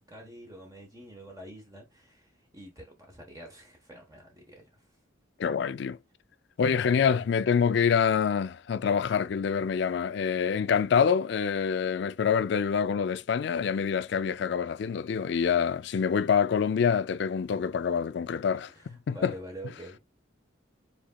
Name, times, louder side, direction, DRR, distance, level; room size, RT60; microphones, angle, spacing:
voice 1, 0.0-4.9 6.7-7.1 18.7-20.0, right 1 dB, 20° right, 1.1 m, -47 dB
voice 2, 5.4-6.0 6.6-19.3, left 6 dB, 60° left, 0.3 m, -26 dB
4.9 x 4.1 x 2.3 m
head